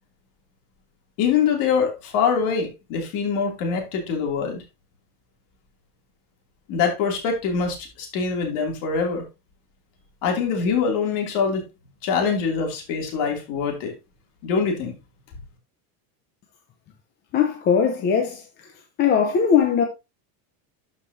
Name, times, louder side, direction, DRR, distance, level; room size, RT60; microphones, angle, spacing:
voice 1, 1.2-4.6 6.7-9.2 10.2-11.7 12.0-13.9 14.4-15.0, left 6 dB, 40° left, 2.8 m, -24 dB
voice 2, 17.3-18.4 19.0-19.8, left 7 dB, 20° left, 0.7 m, -19 dB
12.5 x 5.3 x 2.7 m
supercardioid pair, 180°, 48 cm